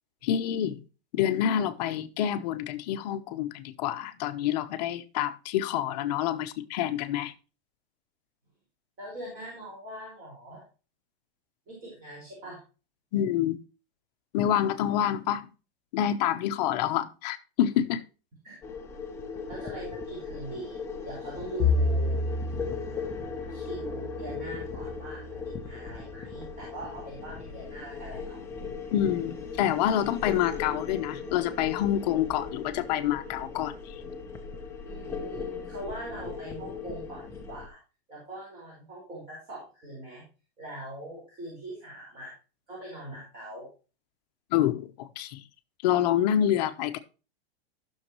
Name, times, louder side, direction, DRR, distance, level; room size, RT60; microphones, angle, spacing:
voice 1, 0.2-0.8 1.1-7.3 13.1-13.6 14.3-15.5 15.9-18.0 28.9-33.7 44.5-45.4 45.8-47.0, left 11 dB, 40° left, 0.9 m, -27 dB
voice 2, 9.0-10.6 11.7-12.6 18.4-18.5 19.5-20.8 21.0-22.2 23.5-28.4 34.9-37.8 38.1-40.2 40.6-42.3 42.7-43.7, right 1 dB, 30° right, 5.0 m, -41 dB
sound 1, 18.6-37.7, left 5 dB, 10° left, 0.8 m, -38 dB
Bowed string instrument, 21.6-26.0, left 3 dB, 25° left, 1.5 m, -31 dB
14.5 x 6.5 x 3.0 m
supercardioid pair, 160°, 31 cm